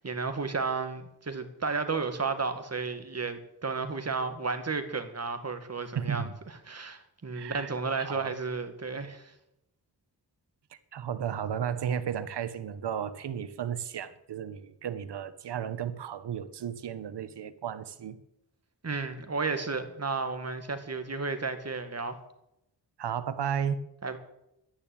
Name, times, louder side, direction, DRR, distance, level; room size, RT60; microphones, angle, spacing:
voice 1, 0.0-9.3 18.8-22.2 24.0-24.2, right 4 dB, 40° right, 8 dB, 2.2 m, -33 dB
voice 2, 5.9-6.3 7.3-7.7 8.0-8.4 10.9-18.2 23.0-23.8, right 8 dB, 85° right, 13 dB, 1.2 m, -34 dB
12.0 x 10.5 x 8.7 m, 0.83 s
cardioid pair, 75°, 40 cm